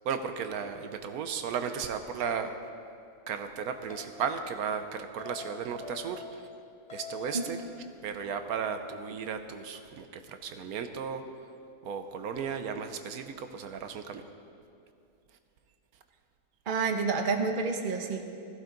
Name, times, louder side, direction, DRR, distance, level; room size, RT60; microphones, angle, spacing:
voice 1, 0.0-2.5 3.3-6.2 6.9-7.6 8.0-11.2 11.8-14.2, right 6 dB, 90° right, 8 dB, 1.2 m, -35 dB
sound 1, 3.9-4.2 5.2-6.6 6.9-7.8, left 5 dB, 35° left, 0.8 m, -44 dB
voice 2, 16.7-18.2, right 4 dB, 40° right, 5 dB, 1.0 m, -29 dB
15.5 x 14.5 x 3.9 m, 2.5 s
omnidirectional pair, 1.5 m